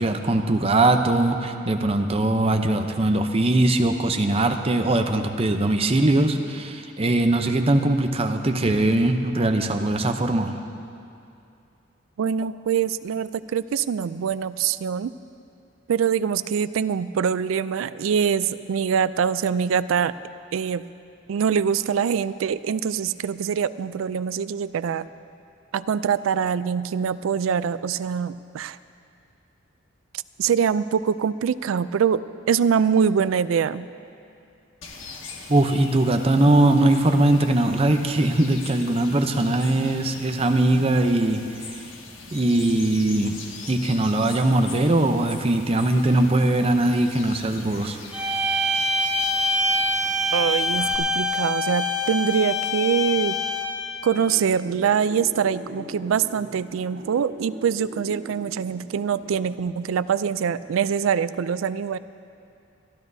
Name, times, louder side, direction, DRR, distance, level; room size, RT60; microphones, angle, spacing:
voice 1, 0.0-10.5 35.5-41.4 42.3-43.4 43.7-48.0, right 2 dB, 30° right, 5 dB, 0.7 m, -21 dB
voice 2, 12.2-15.1 15.9-20.1 20.5-20.8 21.3-25.1 25.7-28.8 30.4-33.9 50.3-53.4 54.0-62.0, right 7 dB, 90° right, 16 dB, 0.3 m, -24 dB
sound 1, 34.8-51.0, left 4 dB, 80° left, 1.4 m, -42 dB
sound 2, 48.1-53.9, left 1 dB, 5° right, 1.6 m, -24 dB
sound 3, 54.1-59.6, right 1 dB, 60° right, 1.2 m, -41 dB
25.0 x 12.5 x 2.7 m, 2.6 s
head